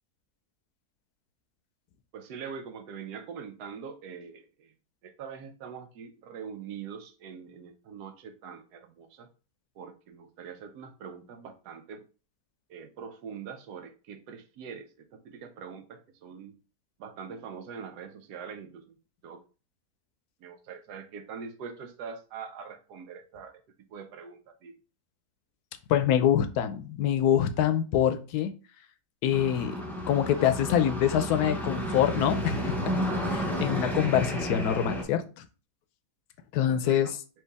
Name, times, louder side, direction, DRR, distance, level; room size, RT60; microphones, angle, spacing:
voice 1, 2.1-4.7 5.0-9.3 9.8-12.0 12.7-16.6 17.0-19.0 19.2-19.4 20.4-23.6 23.9-24.7 36.6-37.1, right 6 dB, 90° right, 1.3 m, -43 dB
voice 2, 25.9-28.5 29.2-29.8 30.1-32.8 33.2-35.5 36.5-37.2, left 10 dB, 80° left, 1.1 m, -25 dB
sound 1, 29.3-35.0, equal, 5° left, 0.3 m, -31 dB
4.6 x 2.7 x 3.4 m
omnidirectional pair, 1.7 m